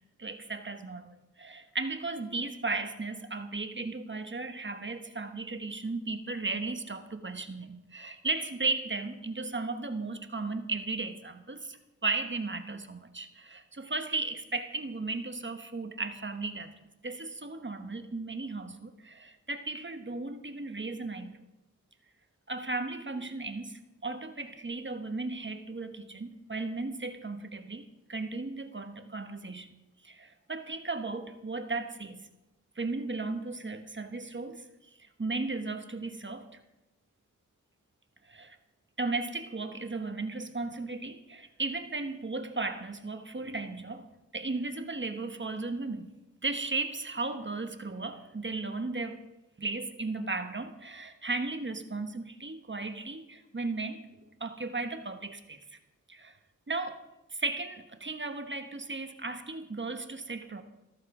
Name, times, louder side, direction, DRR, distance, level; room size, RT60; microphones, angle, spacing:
voice 1, 0.2-1.1 1.4-11.8 12.0-16.7 17.0-21.3 22.5-29.7 30.1-32.2 32.8-34.6 35.2-36.5 38.3-38.6 39.0-44.0 44.3-46.1 46.4-49.2 49.6-54.0 54.4-55.6 56.1-56.3 56.7-57.0 57.4-60.6, right 3 dB, 35° right, 7 dB, 1.3 m, -35 dB
14.5 x 13.0 x 5.0 m, 1.0 s
wide cardioid pair, 60°, 32 cm